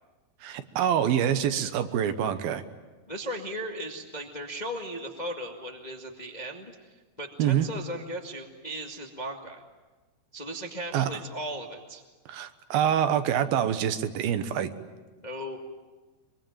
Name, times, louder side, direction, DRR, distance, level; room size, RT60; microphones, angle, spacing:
voice 1, 0.4-2.6 7.4-7.7 10.9-11.1 12.3-14.7, right 9 dB, 80° right, 10 dB, 3.0 m, -26 dB
voice 2, 3.1-9.6 10.3-12.0 15.2-15.6, right 1 dB, 20° left, 2 dB, 1.1 m, -37 dB
24.0 x 23.5 x 9.1 m, 1.3 s
omnidirectional pair, 4.3 m